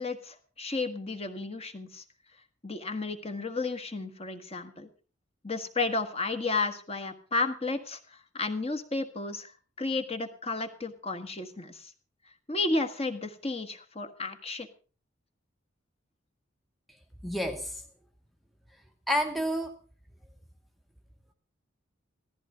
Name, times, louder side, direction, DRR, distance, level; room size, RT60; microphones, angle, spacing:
voice 1, 0.0-2.0 2.6-4.9 5.4-8.0 8.3-9.5 9.8-11.9 12.5-14.7, left 3 dB, 30° left, 1.5 m, -32 dB
voice 2, 17.2-17.8 19.1-19.7, equal, ahead, 0.9 m, -29 dB
15.5 x 14.0 x 5.0 m
head